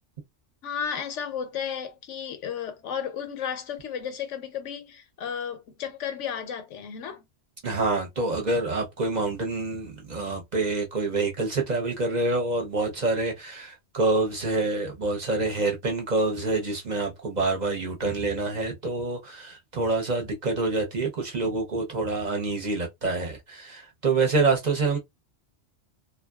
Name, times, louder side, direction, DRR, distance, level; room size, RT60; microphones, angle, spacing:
voice 1, 0.6-7.3, left 8 dB, 90° left, 1.0 m, -33 dB
voice 2, 7.6-25.0, right 3 dB, 45° right, 0.8 m, -27 dB
2.6 x 2.3 x 2.3 m
omnidirectional pair, 1.2 m